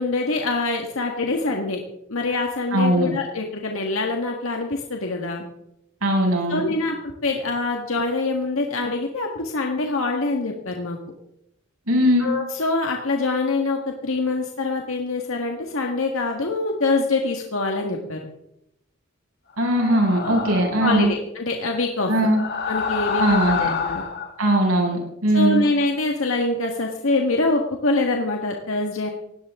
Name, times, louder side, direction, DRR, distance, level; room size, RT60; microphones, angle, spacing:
voice 1, 0.0-1.8 2.1-5.4 6.5-6.9 7.2-11.0 12.2-18.2 20.8-22.1 22.7-23.4 23.8-24.0 25.3-29.1, left 3 dB, 75° left, 1 dB, 1.8 m, -24 dB
voice 2, 2.7-3.1 6.0-6.6 11.9-12.3 19.6-21.1 22.1-22.4 23.2-23.7 24.4-25.6, right 1 dB, 85° right, 0 dB, 6.5 m, -19 dB
sound 1, 19.7-20.9 22.2-24.3, left 5 dB, 50° left, 1.9 m, -27 dB
18.5 x 17.0 x 3.7 m, 0.82 s
head